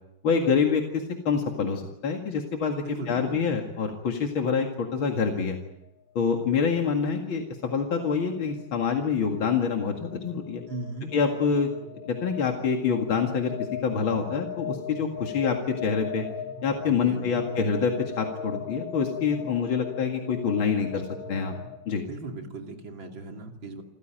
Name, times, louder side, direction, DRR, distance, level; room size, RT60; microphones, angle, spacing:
voice 1, 0.2-5.6 6.2-10.6 11.1-11.7 12.1-13.6 13.8-15.6 15.8-16.2 16.6-21.5 21.9-22.0, left 6 dB, 85° left, 2 dB, 2.8 m, -26 dB
voice 2, 2.8-3.4 10.7-11.1 16.8-17.4 22.1-23.8, right 3 dB, 75° right, 3 dB, 3.5 m, -38 dB
sound 1, 5.7-21.8, left 7 dB, 25° left, 2.6 m, -40 dB
29.0 x 15.0 x 9.0 m, 0.89 s
omnidirectional pair, 2.2 m